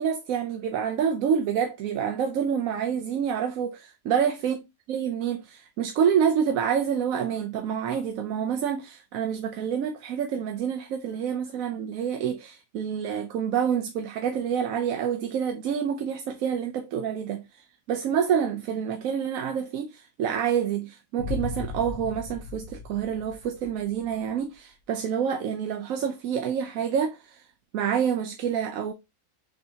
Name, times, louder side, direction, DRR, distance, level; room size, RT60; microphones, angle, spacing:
voice 1, 0.0-4.6 4.9-27.5 27.7-28.9, right 8 dB, 80° right, 1.0 m, -27 dB
Boom, 21.2-24.2, left 4 dB, 90° left, 1.1 m, -36 dB
6.3 x 2.8 x 2.7 m
omnidirectional pair, 1.4 m